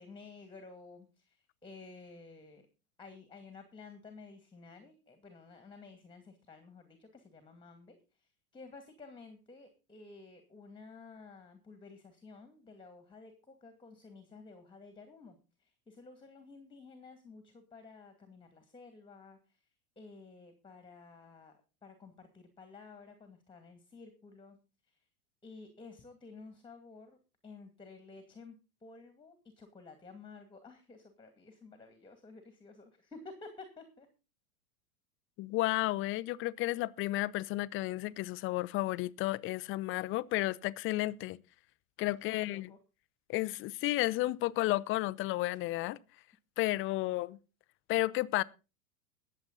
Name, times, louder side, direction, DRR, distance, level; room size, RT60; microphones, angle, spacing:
voice 1, 0.0-2.7 3.0-19.6 20.0-24.6 24.9-25.0 25.4-27.2 27.4-28.6 28.8-34.1 42.3-42.8 45.5-45.6, left 4 dB, 10° left, 2.2 m, -53 dB
voice 2, 35.4-41.4 42.0-42.7 43.3-46.0 46.6-47.4 47.9-48.4, left 18 dB, 30° left, 0.5 m, -32 dB
21.0 x 7.8 x 3.9 m
hypercardioid pair, 115°, 43 cm